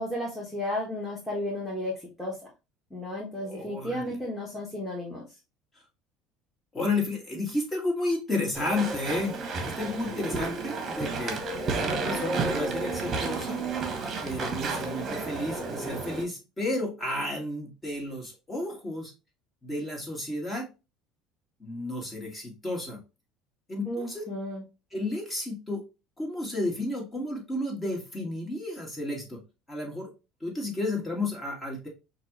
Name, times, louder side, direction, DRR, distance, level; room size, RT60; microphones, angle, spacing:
voice 1, 0.0-1.9 2.2-2.3 2.9-5.2 23.9-24.6, left 1 dB, ahead, -3 dB, 1.3 m, -33 dB
voice 2, 3.4-4.0 6.7-11.4 11.7-13.6 14.2-19.1 19.6-20.6 21.6-23.0 23.7-24.2 24.9-25.8 26.2-29.4 29.7-30.1 30.4-31.9, left 2 dB, 20° left, 0 dB, 1.9 m, -32 dB
Walk footsteps / Chatter / Squeak, 8.5-16.2, right 3 dB, 35° right, 1.0 m, -31 dB
5.7 x 2.5 x 3.1 m, 0.29 s
supercardioid pair, 110°, 0 cm